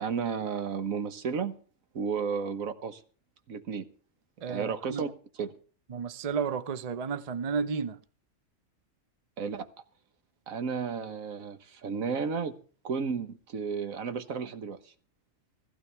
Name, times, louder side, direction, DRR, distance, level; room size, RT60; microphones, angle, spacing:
voice 1, 0.0-1.6 1.9-3.0 3.5-3.9 4.5-5.1 5.4-5.5 9.4-9.7 10.5-12.6 12.8-14.9, right 6 dB, 85° right, 1.5 m, -33 dB
voice 2, 4.4-5.1 5.9-8.0, right 6 dB, 35° right, 0.7 m, -32 dB
16.0 x 15.0 x 3.4 m
omnidirectional pair, 1.4 m